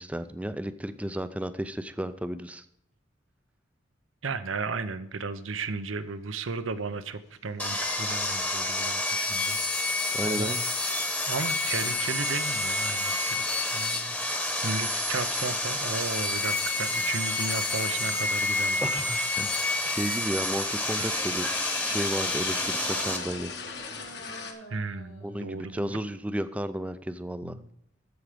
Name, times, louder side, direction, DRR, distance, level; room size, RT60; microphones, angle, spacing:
voice 1, 0.0-2.7 10.1-10.6 18.8-19.5 19.8-21.5 21.8-23.5 25.2-27.6, right 1 dB, 5° right, 12 dB, 0.4 m, -33 dB
voice 2, 4.2-10.6 11.3-19.0 24.7-26.0 27.4-27.7, right 4 dB, 85° right, 12 dB, 0.8 m, -35 dB
Sawing, 7.6-23.2, left 2 dB, 10° left, 1.1 m, -29 dB
sound 1, 8.7-8.8 9.0-24.5, left 6 dB, 55° left, 1.4 m, -42 dB
sound 2, 22.5-25.9 27.0-27.1, right 1 dB, 80° left, 4.3 m, -47 dB
13.5 x 4.9 x 5.0 m, 0.76 s
head